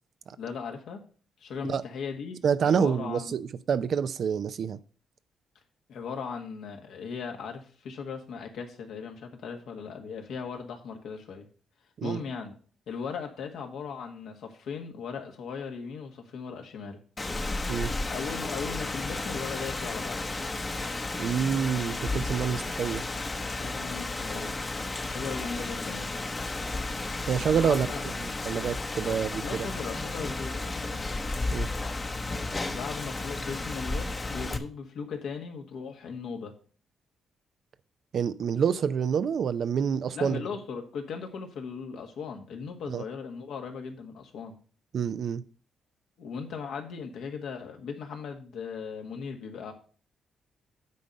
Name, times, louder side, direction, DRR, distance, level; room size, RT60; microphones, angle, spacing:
voice 1, 0.4-1.0 1.4-3.3 5.9-11.5 12.0-12.5 12.9-17.0 18.1-20.2 23.4-24.5 25.1-26.2 27.4-28.0 29.0-31.1 32.6-36.5 40.1-44.6 46.2-49.7, left 6 dB, 75° left, 1.5 m, -38 dB
voice 2, 2.4-4.8 12.0-12.2 17.7-17.9 21.2-23.0 27.3-27.9 28.2-29.7 31.5-31.7 38.1-40.4 42.9-43.0 44.9-45.4, right 7 dB, 65° right, 0.5 m, -27 dB
Rain, 17.2-34.6, left 2 dB, 30° left, 1.0 m, -33 dB
9.4 x 4.0 x 6.4 m
supercardioid pair, 55°, 0 cm